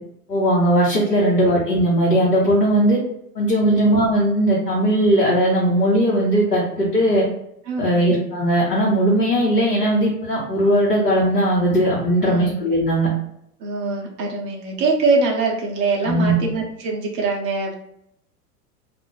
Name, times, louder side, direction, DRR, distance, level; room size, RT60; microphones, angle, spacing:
voice 1, 0.3-3.0 3.3-7.2 7.8-13.1 16.0-16.4, right 1 dB, 75° left, -6 dB, 1.1 m, -18 dB
voice 2, 7.7-8.0 12.2-12.6 13.6-17.7, right 3 dB, 25° right, -1 dB, 0.5 m, -23 dB
2.4 x 2.0 x 3.8 m, 0.76 s
figure-of-eight pair, 90°, 48 cm